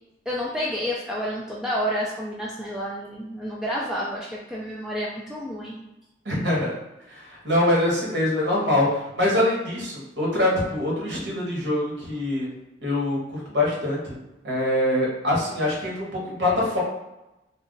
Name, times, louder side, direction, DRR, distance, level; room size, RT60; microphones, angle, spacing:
voice 1, 0.3-5.8, equal, 5° right, -5 dB, 0.3 m, -29 dB
voice 2, 6.2-6.7 7.1-12.5 12.8-14.2 14.4-16.8, left 1 dB, 85° right, -4 dB, 1.1 m, -24 dB
2.4 x 2.2 x 3.8 m, 0.97 s
head